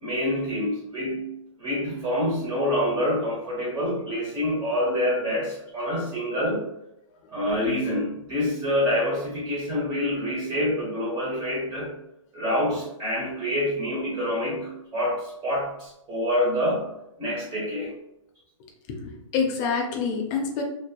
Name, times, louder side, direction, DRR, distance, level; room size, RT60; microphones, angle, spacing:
voice 1, 0.0-1.3 1.6-6.7 7.3-11.9 12.3-16.9 17.2-17.9, left 1 dB, 25° right, -6 dB, 0.8 m, -26 dB
voice 2, 18.9-20.6, left 5 dB, 35° left, 2 dB, 0.5 m, -27 dB
2.9 x 2.2 x 2.2 m, 0.84 s
hypercardioid pair, 140°, 17 cm